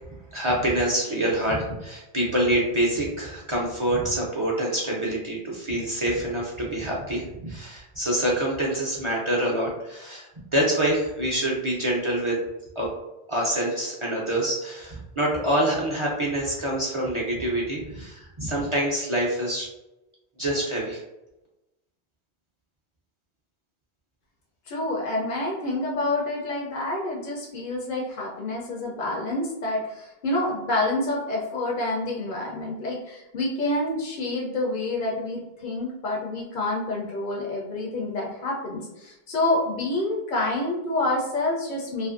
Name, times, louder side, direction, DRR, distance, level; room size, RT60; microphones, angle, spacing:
voice 1, 0.3-12.4 12.8-12.9 13.3-19.7 20.4-21.0, right 1 dB, 40° right, -4 dB, 0.4 m, -26 dB
voice 2, 24.7-42.1, left 2 dB, 60° left, -2 dB, 0.6 m, -28 dB
2.6 x 2.5 x 2.4 m, 0.97 s
omnidirectional pair, 1.1 m